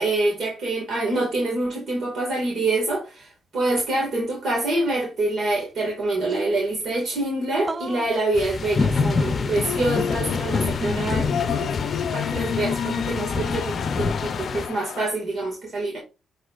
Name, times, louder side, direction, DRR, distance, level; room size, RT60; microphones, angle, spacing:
voice 1, 0.0-11.7 12.1-16.0, right 2 dB, 60° right, 2.0 m, -26 dB
sound 1, 5.6-5.7 5.9-6.0 6.3-6.9 7.6-8.2 9.3-10.2 10.8-11.4, right 3 dB, 25° right, 0.5 m, -35 dB
sound 2, 8.4-14.7, left 4 dB, 40° left, 0.7 m, -27 dB
sound 3, 9.5-15.1, left 9 dB, 70° left, 0.4 m, -29 dB
11.0 x 3.7 x 2.5 m
cardioid pair, 90°, 0 cm